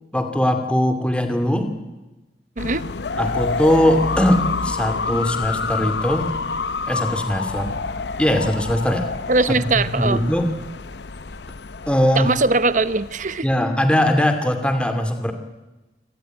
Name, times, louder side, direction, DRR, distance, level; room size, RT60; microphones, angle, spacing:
voice 1, 0.1-1.7 3.2-6.3 6.9-7.7 8.2-9.1 9.5-10.5 11.9-12.3 13.4-15.3, equal, 5° left, 6 dB, 2.4 m, -20 dB
sound 1, 2.6-13.4, left 4 dB, 80° left, 0.8 m, -28 dB
voice 2, 2.6-2.9 9.3-10.2 12.1-13.5, right 3 dB, 45° right, 15 dB, 0.9 m, -20 dB
26.0 x 18.0 x 9.4 m, 1.1 s
head